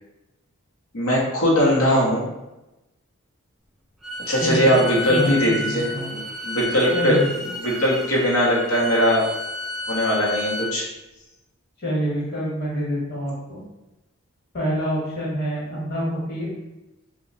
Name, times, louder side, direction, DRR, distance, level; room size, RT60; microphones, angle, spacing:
voice 1, 0.9-2.2 4.3-5.9 6.4-7.2 7.6-9.3 9.9-10.9, equal, 80° left, -4 dB, 0.9 m, -20 dB
Bowed string instrument, 4.0-10.8, left 1 dB, ahead, 0.3 m, -31 dB
voice 2, 4.4-4.7 5.0-6.1 6.9-7.3 11.8-13.6 14.5-16.5, equal, 50° left, -6 dB, 1.3 m, -26 dB
2.9 x 2.4 x 3.9 m, 0.97 s
head